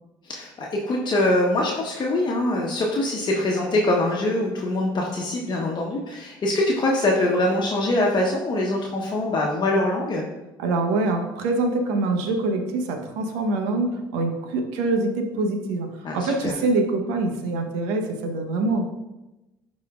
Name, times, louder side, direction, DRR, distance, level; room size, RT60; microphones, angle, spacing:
voice 1, 0.2-10.3 16.0-16.5, left 1 dB, 40° left, -2 dB, 1.1 m, -23 dB
voice 2, 10.6-15.9 16.1-18.8, right 2 dB, 75° right, 4 dB, 1.0 m, -24 dB
11.5 x 4.2 x 2.4 m, 1.0 s
hypercardioid pair, 70°, 11 cm